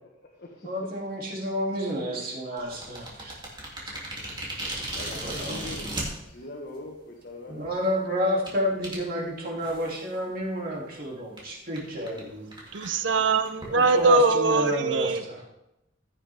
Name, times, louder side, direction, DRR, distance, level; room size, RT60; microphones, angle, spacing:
voice 1, 0.0-0.8 4.9-6.0 6.2-7.7 12.1-12.2, left 2 dB, 55° left, -1 dB, 1.4 m, -42 dB
voice 2, 0.6-3.4 5.2-5.6 7.5-12.4 13.7-15.5, equal, 50° right, -3 dB, 2.7 m, -30 dB
sound 1, 2.6-6.1 6.9-7.0 7.5-7.7 8.5-8.6 8.8-9.0 9.6-10.0 10.4-10.5 10.8-10.9 11.4-11.5 11.7-11.8 12.1-12.2 12.5-14.2, right 1 dB, 25° right, 2.8 m, -36 dB
voice 3, 12.7-15.2, right 3 dB, 75° right, 10 dB, 0.6 m, -22 dB
15.5 x 7.5 x 3.5 m, 0.90 s
head